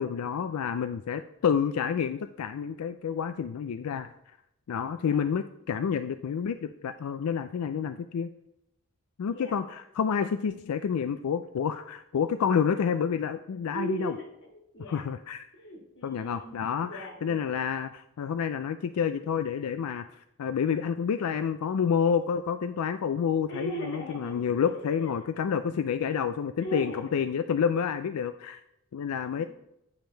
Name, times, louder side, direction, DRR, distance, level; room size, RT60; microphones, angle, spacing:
voice 1, 0.0-4.1 4.7-8.3 9.2-14.1 14.9-15.5 16.0-28.6 28.9-29.4, left 7 dB, 90° left, 10 dB, 0.4 m, -29 dB
voice 2, 13.7-15.0 15.6-16.6 16.8-17.5 23.5-25.3 26.6-27.2 29.3-29.5, right 1 dB, 55° left, 2 dB, 1.8 m, -39 dB
9.4 x 5.3 x 4.4 m, 0.82 s
head